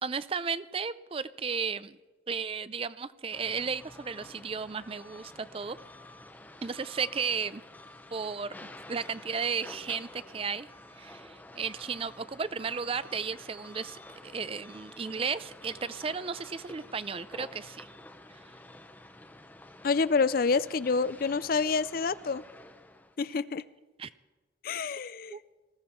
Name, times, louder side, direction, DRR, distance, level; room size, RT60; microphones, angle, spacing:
voice 1, 0.0-2.0 2.3-5.8 6.6-7.6 8.1-10.7 11.0-17.9 24.0-24.1 25.3-25.4, right 5 dB, 30° right, 16 dB, 0.4 m, -34 dB
sound 1, 3.3-23.2, left 1 dB, 10° left, 0.7 m, -50 dB
voice 2, 19.8-22.4 23.2-23.6 24.6-25.4, left 4 dB, 50° left, 17 dB, 0.5 m, -27 dB
20.0 x 15.5 x 4.5 m, 1.2 s
head